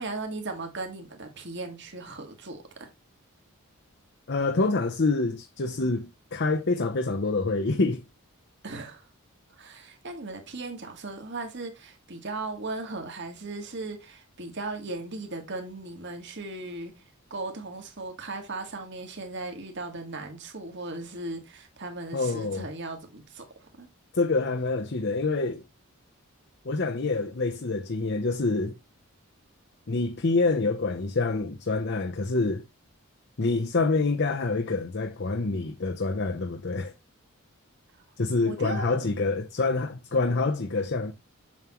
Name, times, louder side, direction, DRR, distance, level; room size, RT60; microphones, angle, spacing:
voice 1, 0.0-2.9 8.6-9.1 9.6-16.9 17.3-23.9 38.4-38.9, right 2 dB, 55° right, 1.9 m, -37 dB
voice 2, 4.3-8.0 22.1-22.7 24.1-25.6 26.6-28.7 29.9-32.6 33.4-36.9 38.2-41.1, left 3 dB, 50° left, 0.7 m, -26 dB
7.3 x 7.2 x 3.1 m
head